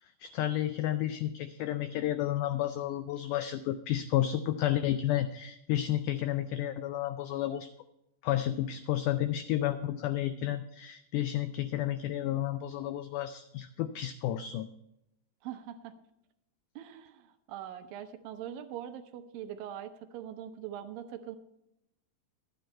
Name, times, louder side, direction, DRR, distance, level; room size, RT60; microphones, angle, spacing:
voice 1, 0.0-7.7 8.2-14.7, left 12 dB, 85° left, 11 dB, 1.8 m, -31 dB
voice 2, 15.4-15.9 16.8-21.4, right 10 dB, 80° right, 8 dB, 2.4 m, -42 dB
12.5 x 9.3 x 4.3 m, 0.83 s
omnidirectional pair, 4.1 m